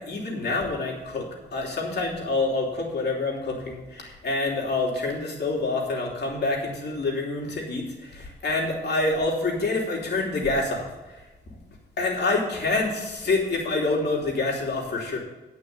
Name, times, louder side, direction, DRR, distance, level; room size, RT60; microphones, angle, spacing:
voice 1, 0.0-10.9 12.0-15.2, left 3 dB, 75° left, -1 dB, 3.1 m, -27 dB
9.9 x 5.8 x 7.8 m, 1.1 s
cardioid pair, 70°, 18 cm